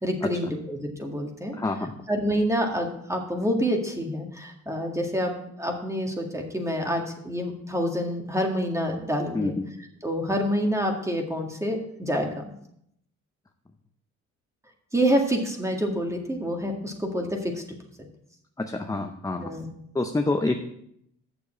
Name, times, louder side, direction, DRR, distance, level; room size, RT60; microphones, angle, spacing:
voice 1, 0.0-1.6 2.1-5.3 5.6-9.6 10.0-12.4 14.9-17.6 18.0-18.1 19.4-19.7, equal, 10° right, 2 dB, 1.9 m, -27 dB
voice 2, 1.6-1.9 9.3-9.7 18.6-19.5 19.9-20.6, left 2 dB, 10° left, 5 dB, 0.7 m, -27 dB
7.0 x 7.0 x 6.5 m, 0.73 s
cardioid pair, 90°, 30 cm